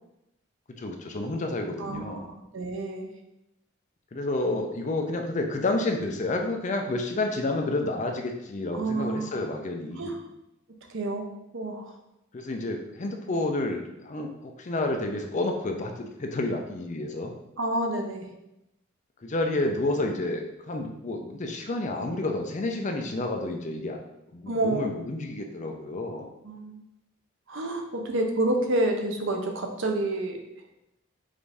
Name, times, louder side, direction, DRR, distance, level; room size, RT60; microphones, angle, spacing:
voice 1, 0.8-2.3 4.1-10.2 12.3-17.4 19.2-24.0 24.3-26.3, left 2 dB, 35° left, 3 dB, 0.5 m, -30 dB
voice 2, 1.8-3.1 8.7-9.3 10.0-10.2 10.9-11.9 17.6-18.2 24.5-24.8 26.4-26.8 27.5-30.4, right 2 dB, 65° right, 3 dB, 0.7 m, -29 dB
5.0 x 2.6 x 3.4 m, 0.86 s
head